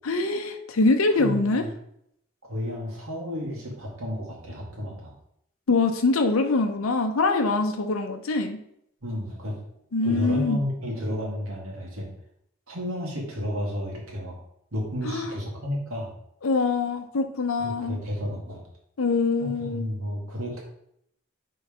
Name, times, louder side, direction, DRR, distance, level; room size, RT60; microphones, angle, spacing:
voice 1, 0.0-1.6 5.7-8.6 9.9-10.6 15.0-15.3 16.4-18.0 19.0-19.9, left 3 dB, 85° left, 5 dB, 0.6 m, -24 dB
voice 2, 1.2-1.7 2.4-5.1 9.0-9.6 10.0-12.1 12.7-14.3 14.7-16.1 17.6-18.6 19.4-20.6, left 1 dB, 90° right, -2 dB, 2.0 m, -32 dB
5.3 x 3.9 x 5.0 m, 0.74 s
head